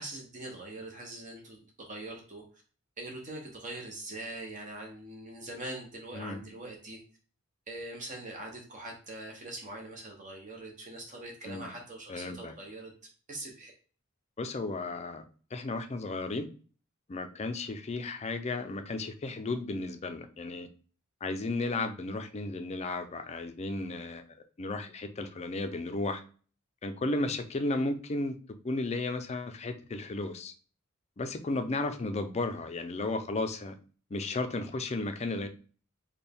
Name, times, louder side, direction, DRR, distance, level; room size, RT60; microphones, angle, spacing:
voice 1, 0.0-2.4 3.0-7.0 7.7-12.9 13.3-13.7, right 2 dB, 35° right, 1 dB, 0.8 m, -42 dB
voice 2, 12.1-12.5 14.4-15.2 15.5-16.5 17.1-20.7 21.2-24.2 24.6-26.2 26.8-28.3 28.6-30.5 31.2-33.7 34.1-35.5, left 2 dB, 30° left, 7 dB, 0.4 m, -34 dB
4.3 x 2.2 x 3.4 m, 0.40 s
head